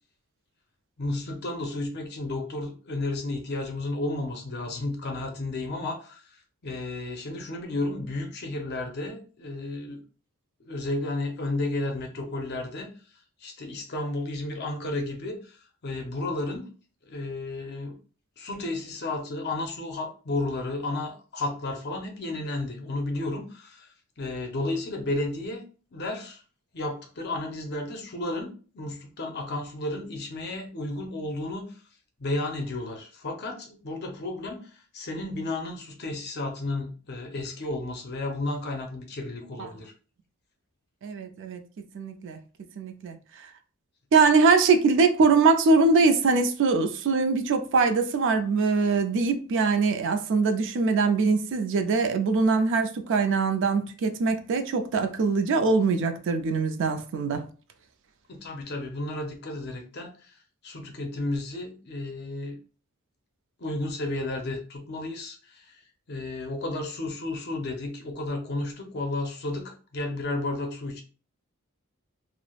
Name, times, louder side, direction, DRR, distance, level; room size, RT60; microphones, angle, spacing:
voice 1, 1.0-10.0 10.6-12.9 13.4-16.7 17.0-18.0 18.4-25.6 25.9-26.4 26.7-31.8 32.2-39.9 58.3-62.6 63.6-65.8 66.1-71.0, left 2 dB, 50° left, 0.6 m, -33 dB
voice 2, 41.0-41.6 41.9-42.4 42.8-43.2 44.1-57.5, right 4 dB, 60° right, 0.4 m, -22 dB
3.2 x 2.0 x 2.3 m
head